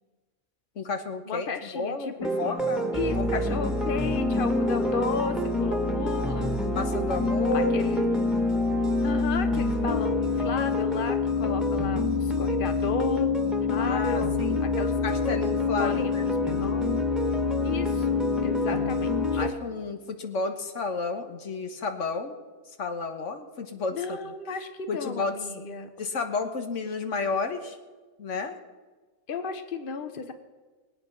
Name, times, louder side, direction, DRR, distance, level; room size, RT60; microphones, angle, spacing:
voice 1, 0.7-1.5 1.7-3.6 6.7-7.8 13.8-14.6 15.0-16.3 18.7-18.8 19.4-22.4 22.8-24.3 24.9-25.4 26.0-27.8 28.2-28.5, left 4 dB, 90° left, 6 dB, 1.6 m, -32 dB
voice 2, 1.3-2.5 2.9-6.5 7.5-8.1 9.0-14.9 15.8-16.9 17.6-19.5 23.9-25.9 29.3-30.3, left 5 dB, 50° left, 8 dB, 1.2 m, -34 dB
sound 1, 2.2-19.5, left 3 dB, ahead, 1.4 m, -26 dB
22.0 x 8.9 x 5.9 m, 1.3 s
omnidirectional pair, 1.2 m